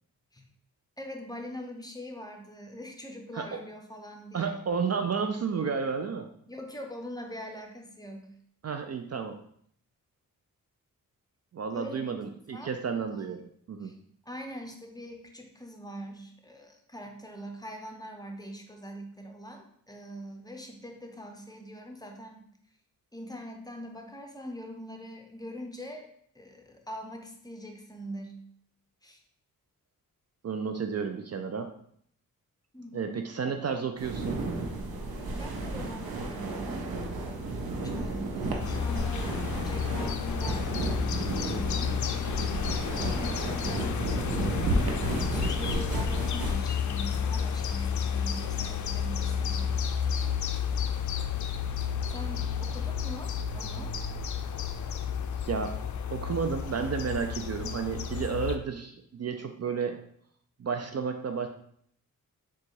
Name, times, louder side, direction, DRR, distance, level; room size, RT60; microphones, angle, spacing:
voice 1, 1.0-4.6 6.5-8.3 11.7-12.2 12.5-12.7 13.1-13.4 13.8-14.0 14.3-22.4 23.1-26.1 26.3-28.4 29.0-29.2 32.7-33.3 35.3-36.8 37.8-41.8 43.0-49.7 52.1-53.9, equal, 10° left, 3 dB, 0.8 m, -42 dB
voice 2, 4.3-6.3 8.6-9.4 11.5-13.9 30.4-31.7 32.9-34.4 42.4-42.7 55.4-55.8 56.1-60.0 60.6-61.5, right 6 dB, 45° right, 6 dB, 0.5 m, -32 dB
sound 1, 34.0-46.6, right 2 dB, 80° right, 0.7 m, -32 dB
sound 2, 38.6-58.6, left 7 dB, 55° left, 0.4 m, -31 dB
3.8 x 2.4 x 4.6 m, 0.65 s
cardioid pair, 55°, 35 cm